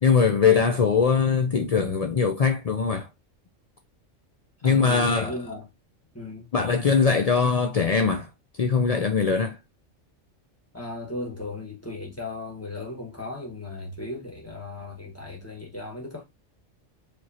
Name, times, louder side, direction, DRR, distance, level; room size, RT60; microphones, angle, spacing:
voice 1, 0.0-3.1 4.6-5.3 6.5-8.3 8.6-9.6, left 5 dB, 75° left, 0.3 m, -21 dB
voice 2, 4.6-5.7 6.1-6.5 10.7-16.2, left 2 dB, 10° left, 1.5 m, -36 dB
5.0 x 3.0 x 2.8 m
omnidirectional pair, 1.3 m